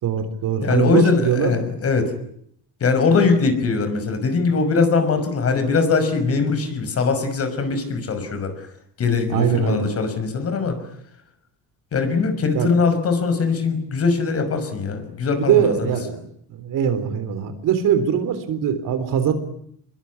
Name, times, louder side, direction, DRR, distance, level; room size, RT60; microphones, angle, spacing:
voice 1, 0.0-1.5 3.4-3.5 9.3-9.9 12.5-12.7 15.4-19.3, right 8 dB, 55° right, 10 dB, 3.9 m, -21 dB
voice 2, 0.6-2.1 2.8-8.5 9.0-10.8 11.9-15.9, left 4 dB, 35° left, 8 dB, 5.9 m, -21 dB
25.5 x 22.5 x 9.8 m, 0.69 s
cardioid pair, 150°, 38 cm